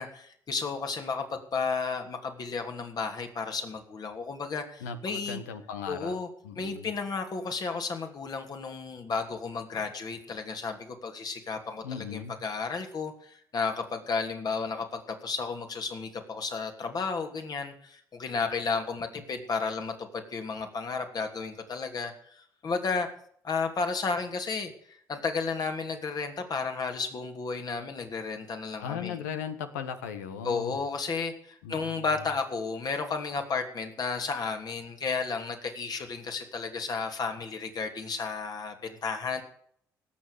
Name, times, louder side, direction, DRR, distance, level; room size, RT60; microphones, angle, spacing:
voice 1, 0.0-5.4 5.9-6.3 6.6-23.1 23.4-29.2 30.4-39.4, left 4 dB, 50° left, 5 dB, 3.0 m, -33 dB
voice 2, 4.8-6.2 6.4-6.9 11.8-12.4 28.8-30.8 31.6-32.0, left 7 dB, 90° left, 9 dB, 1.4 m, -37 dB
18.0 x 7.3 x 6.8 m, 0.63 s
hypercardioid pair, 55°, 9 cm